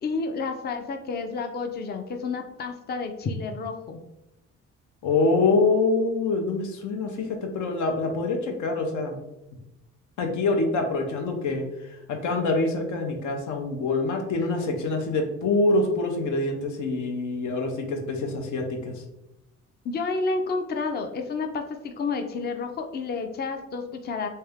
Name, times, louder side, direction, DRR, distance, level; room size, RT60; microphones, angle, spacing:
voice 1, 0.0-4.0 19.8-24.3, left 4 dB, 35° left, 5 dB, 0.5 m, -30 dB
voice 2, 5.0-9.2 10.2-18.9, left 3 dB, 80° left, 4 dB, 0.8 m, -25 dB
3.3 x 2.8 x 3.5 m, 0.91 s
cardioid pair, 90°, 30 cm